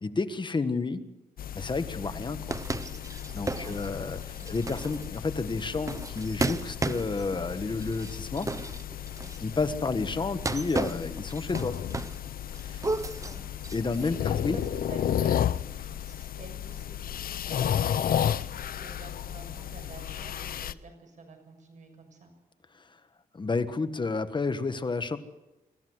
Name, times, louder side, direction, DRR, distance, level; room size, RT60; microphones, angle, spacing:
voice 1, 0.0-1.0 1.5-2.4 3.3-8.5 9.4-11.8 12.6-12.8 13.7-14.6 23.3-25.2, left 3 dB, 30° left, 10 dB, 1.5 m, -30 dB
sound 1, 1.4-20.7, left 10 dB, 70° left, 0.7 m, -33 dB
voice 2, 2.0-2.3 3.5-3.8 4.4-4.5 9.2-9.5 12.8-13.4 14.1-22.3, right 3 dB, 55° right, 4 dB, 6.7 m, -49 dB
sound 2, 2.5-9.5 10.3-12.3 12.5-14.1, right 3 dB, 20° right, 0.7 m, -34 dB
25.0 x 14.5 x 8.0 m, 1.1 s
wide cardioid pair, 105°, 15 cm